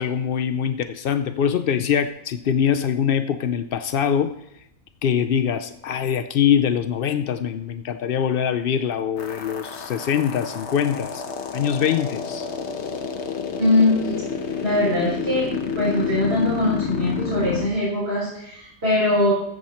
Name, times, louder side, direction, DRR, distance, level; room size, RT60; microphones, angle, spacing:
voice 1, 0.0-4.3 5.0-11.2 11.5-12.5, left 8 dB, 80° left, 10 dB, 0.5 m, -23 dB
sound 1, 9.2-17.7, left 6 dB, 50° left, 1.1 m, -29 dB
voice 2, 13.6-14.2 14.6-15.5 15.7-19.3, left 2 dB, 40° right, -9 dB, 4.8 m, -21 dB
14.5 x 7.4 x 4.3 m, 0.79 s
omnidirectional pair, 1.6 m